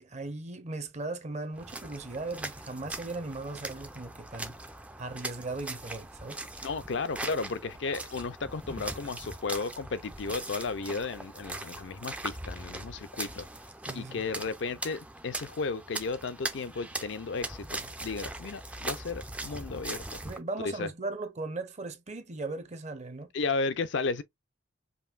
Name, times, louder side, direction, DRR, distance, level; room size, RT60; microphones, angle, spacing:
voice 1, 0.0-4.5 5.0-6.4 13.9-14.2 20.2-23.3, right 2 dB, 35° right, 0.7 m, -38 dB
sound 1, 1.6-20.4, right 2 dB, 5° right, 0.4 m, -40 dB
voice 2, 6.6-13.5 13.9-20.2 20.6-20.9 23.3-24.2, left 4 dB, 65° left, 0.5 m, -34 dB
5.3 x 2.6 x 2.4 m
head